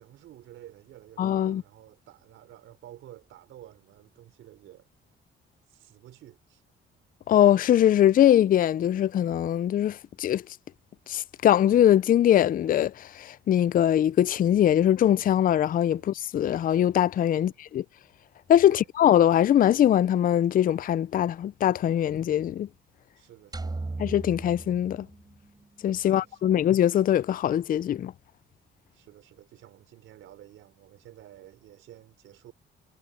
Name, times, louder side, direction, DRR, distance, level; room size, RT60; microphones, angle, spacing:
voice 1, 0.0-4.9 5.7-6.6 15.9-16.1 17.3-17.6 18.7-18.9 23.2-23.9 26.0-26.6 28.9-32.5, right 13 dB, 85° right, 4.9 m, -51 dB
voice 2, 1.2-1.6 7.3-10.4 11.1-17.8 18.5-22.7 24.0-25.1 25.8-28.1, left 11 dB, 45° left, 0.4 m, -22 dB
sound 1, 23.5-25.8, right 3 dB, 20° right, 3.8 m, -37 dB
cardioid pair, 90°, 20 cm